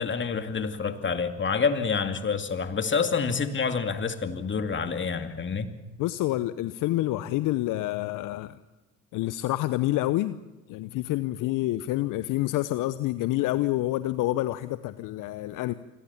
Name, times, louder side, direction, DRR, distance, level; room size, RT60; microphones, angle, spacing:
voice 1, 0.0-5.7, left 5 dB, 30° left, 8 dB, 2.6 m, -27 dB
voice 2, 6.0-8.6 9.1-10.4 10.7-15.7, left 16 dB, 60° left, 14 dB, 0.9 m, -28 dB
28.0 x 21.5 x 7.2 m, 1.1 s
hypercardioid pair, 60°, 36 cm